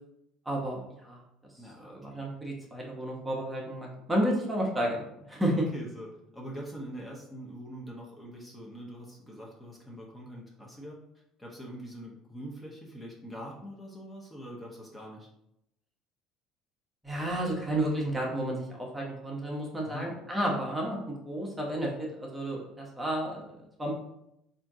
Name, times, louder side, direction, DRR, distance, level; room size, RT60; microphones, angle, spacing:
voice 1, 0.4-1.2 1.8-5.0 5.3-5.6 17.0-23.9, right 1 dB, 10° right, -2 dB, 1.1 m, -31 dB
voice 2, 1.5-2.2 5.5-6.1 6.3-11.0 11.4-15.3 19.9-20.1, equal, 10° left, -3 dB, 1.0 m, -43 dB
3.6 x 2.7 x 3.6 m, 0.81 s
hypercardioid pair, 60°, 0 cm